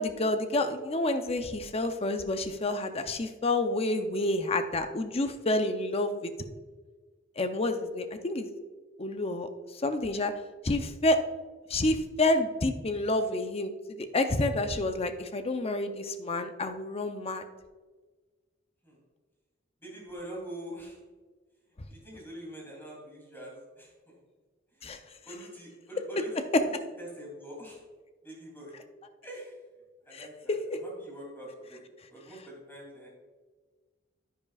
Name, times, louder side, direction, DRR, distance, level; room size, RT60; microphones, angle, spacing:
voice 1, 0.0-6.3 7.4-8.5 9.0-9.5 9.8-10.3 10.6-11.2 11.7-17.4 24.8-25.0 26.2-26.3 30.1-30.8, left 2 dB, 30° left, 8 dB, 0.6 m, -29 dB
voice 2, 19.8-21.0 21.9-24.2 24.7-24.9 25.2-26.7 27.0-27.8 28.2-28.7 29.2-29.5 30.1-31.8 32.1-33.1, right 1 dB, 10° left, -3 dB, 2.9 m, -44 dB
10.0 x 9.9 x 2.4 m, 1.4 s
head